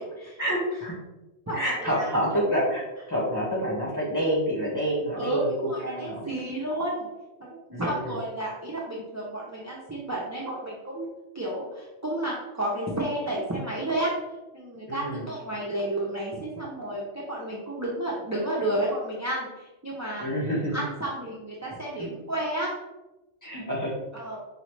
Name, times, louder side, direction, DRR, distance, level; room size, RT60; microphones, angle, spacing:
voice 1, 0.4-1.0 1.5-6.2 7.7-8.2 14.9-15.2 20.2-20.8 22.0-22.1 23.4-23.9, equal, 15° left, -6 dB, 1.3 m, -28 dB
voice 2, 1.5-2.1 5.1-7.1 7.4-11.1 11.3-14.1 14.5-20.2 20.7-22.7 24.1-24.4, right 1 dB, 20° right, -5 dB, 0.4 m, -31 dB
5.2 x 2.4 x 3.1 m, 1.0 s
omnidirectional pair, 1.3 m